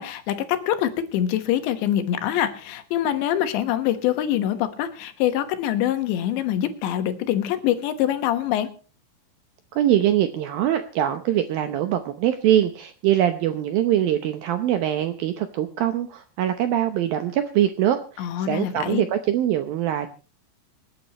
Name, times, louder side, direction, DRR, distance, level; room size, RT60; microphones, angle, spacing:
voice 1, 0.0-8.7 18.2-19.0, left 11 dB, 80° left, 9 dB, 3.5 m, -24 dB
voice 2, 9.7-20.1, right 11 dB, 75° right, 8 dB, 2.1 m, -23 dB
26.0 x 9.6 x 3.0 m, 0.34 s
omnidirectional pair, 5.2 m